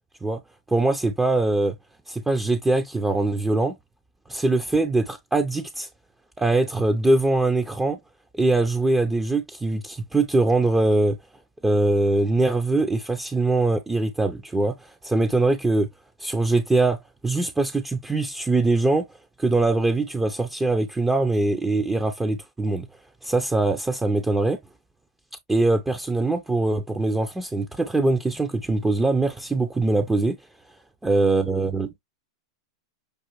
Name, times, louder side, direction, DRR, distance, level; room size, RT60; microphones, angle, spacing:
voice 1, 0.7-1.7 2.1-3.8 4.3-5.9 6.4-8.0 8.3-11.2 11.6-15.9 16.2-19.1 19.4-22.9 23.2-24.6 25.5-30.4 31.0-32.0, right 2 dB, 10° right, 0.6 m, -22 dB
6.6 x 2.5 x 3.0 m
figure-of-eight pair, 95°, 3 cm